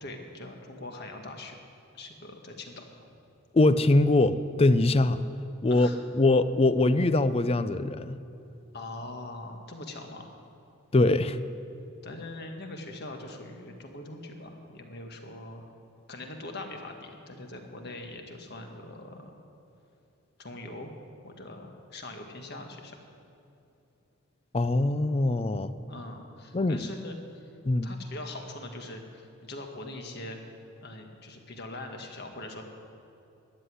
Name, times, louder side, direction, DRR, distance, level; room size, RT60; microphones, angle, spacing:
voice 1, 0.0-1.5 1.9-2.8 5.7-6.0 8.7-10.4 12.0-15.7 16.1-19.3 20.4-20.9 21.2-22.9 25.9-27.4 27.8-30.4 30.8-32.6, left 2 dB, 50° left, 4 dB, 1.5 m, -42 dB
voice 2, 3.5-5.2 5.6-5.9 6.1-8.2 10.9-11.4 24.5-25.7 26.5-26.9 27.6-27.9, left 2 dB, 30° left, 13 dB, 0.4 m, -23 dB
13.5 x 8.0 x 9.9 m, 2.8 s
head